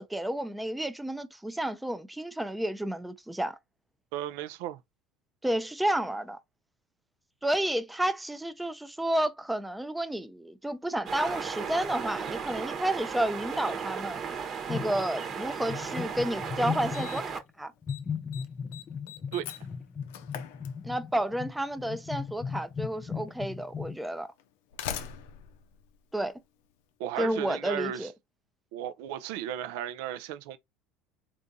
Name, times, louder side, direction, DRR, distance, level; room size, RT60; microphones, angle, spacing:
voice 1, 0.0-3.6 5.4-6.4 7.4-14.2 14.7-17.7 20.8-24.3 26.1-26.4 27.2-28.1, right 1 dB, 5° right, 0.5 m, -31 dB
voice 2, 4.1-4.8 19.3-19.5 27.0-28.1 28.7-30.6, right 11 dB, 75° right, 0.4 m, -35 dB
sound 1, 11.1-17.4, right 6 dB, 40° right, 1.0 m, -36 dB
sound 2, 14.7-15.3 15.6-17.3 17.8-24.0, left 6 dB, 35° left, 0.6 m, -37 dB
Slam, 16.1-16.2 16.9-17.4 17.7-18.0 18.3-21.3 22.4-22.5 23.4-23.5 24.4-26.7, left 9 dB, 85° left, 0.5 m, -42 dB
3.5 x 2.5 x 2.6 m
supercardioid pair, 100°, 0 cm